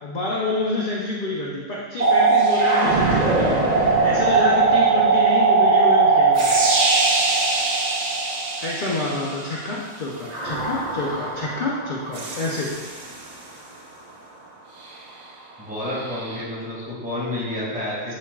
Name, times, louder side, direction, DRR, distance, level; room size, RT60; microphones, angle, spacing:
voice 1, 0.0-6.6 8.6-12.7, left 2 dB, 45° left, -4 dB, 0.8 m, -28 dB
sound 1, 2.0-9.6 10.3-13.3 16.0-16.4, right 4 dB, 40° right, 0.7 m, -20 dB
voice 2, 15.6-18.2, left 1 dB, 5° right, -8 dB, 2.0 m, -29 dB
11.5 x 4.5 x 2.4 m, 1.4 s
omnidirectional pair, 1.5 m